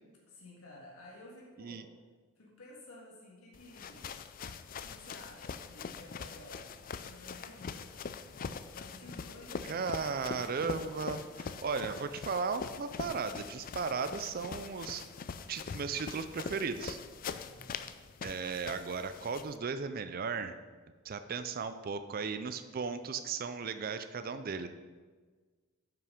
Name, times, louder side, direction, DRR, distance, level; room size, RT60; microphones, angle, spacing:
voice 1, 0.2-1.9 2.4-4.2 4.8-6.7 7.0-10.5 17.4-17.8, left 1 dB, 75° left, -3 dB, 1.8 m, -53 dB
sound 1, 3.5-19.6, left 5 dB, 40° left, 0.3 m, -43 dB
voice 2, 9.7-15.0 15.5-17.0 18.2-20.6 21.0-24.7, right 5 dB, 40° right, 10 dB, 0.4 m, -36 dB
9.2 x 5.9 x 5.0 m, 1.4 s
head